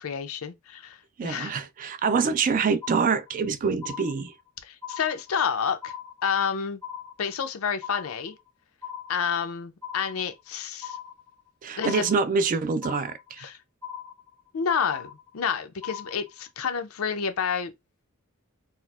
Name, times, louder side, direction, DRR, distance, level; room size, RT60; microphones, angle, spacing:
voice 1, 0.0-1.5 4.6-5.9 6.2-6.8 7.2-8.4 9.1-11.0 11.8-12.1 13.4-13.6 14.5-17.7, left 7 dB, 85° left, 0.5 m, -29 dB
voice 2, 1.2-4.3 11.6-13.5, right 5 dB, 40° right, 0.3 m, -25 dB
sound 1, 2.3-2.5 2.8-3.5 3.8-4.5 4.8-5.5 5.8-6.5 6.8-7.5 7.8-8.5 8.8-9.5 9.8-10.5 10.8-11.5 11.8-12.5 12.8-13.5 13.8-14.5 14.8-15.5 15.8-16.5, left 9 dB, 70° right, 2.0 m, -40 dB
4.2 x 2.0 x 2.3 m
head